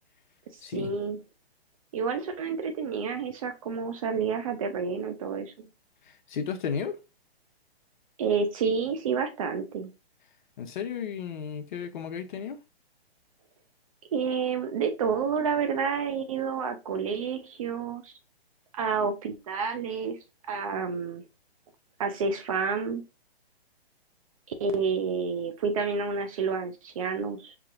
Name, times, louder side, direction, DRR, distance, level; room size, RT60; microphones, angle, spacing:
voice 1, 0.7-1.2 1.9-5.7 8.2-9.9 14.1-18.1 18.7-20.2 20.4-21.2 22.0-23.0 24.6-27.5, right 5 dB, 35° right, 0.5 m, -29 dB
voice 2, 6.3-7.0 10.6-12.6, left 7 dB, 50° left, 0.8 m, -33 dB
4.8 x 2.8 x 2.5 m
hypercardioid pair, 140°, 32 cm